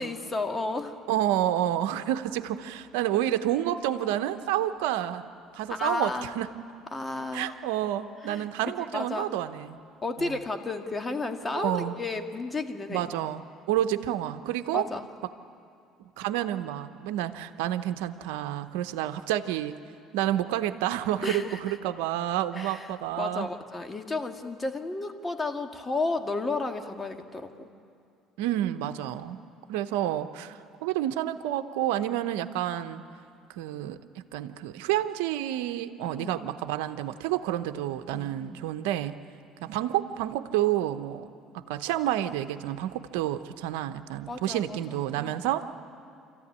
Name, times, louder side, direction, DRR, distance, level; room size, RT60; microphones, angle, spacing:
voice 1, 0.0-1.0 5.7-6.3 6.9-7.5 8.2-9.3 10.0-13.1 14.7-15.1 21.2-21.8 22.5-27.7 36.2-36.5 38.1-38.7 44.3-45.5, left 3 dB, 25° left, 5 dB, 1.9 m, -33 dB
voice 2, 1.1-5.2 5.5-6.5 7.3-9.8 10.2-10.3 11.5-11.9 12.9-13.4 13.7-14.8 16.2-19.8 20.1-23.5 28.4-29.4 29.7-33.0 33.5-34.0 34.3-39.1 39.6-41.3 41.5-45.7, right 12 dB, 85° right, 9 dB, 0.8 m, -29 dB
26.0 x 14.5 x 9.7 m, 2.4 s
supercardioid pair, 80°, 0 cm